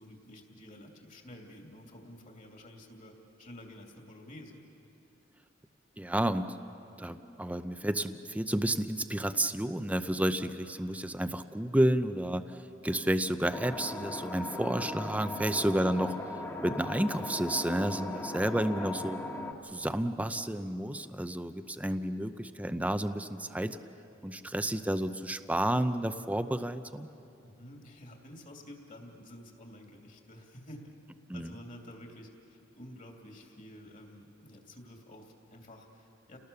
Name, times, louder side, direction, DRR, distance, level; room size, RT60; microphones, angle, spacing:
voice 1, 0.0-4.6 27.4-30.9 31.3-36.4, left 1 dB, 40° left, 2 dB, 2.8 m, -50 dB
voice 2, 6.0-6.5 7.0-16.2 16.6-19.2 19.6-23.8 24.2-27.1 31.3-31.5, right 1 dB, 5° right, 10 dB, 0.6 m, -31 dB
sound 1, 13.5-19.5, left 2 dB, 15° left, 1.6 m, -38 dB
30.0 x 18.5 x 6.9 m, 2.8 s
head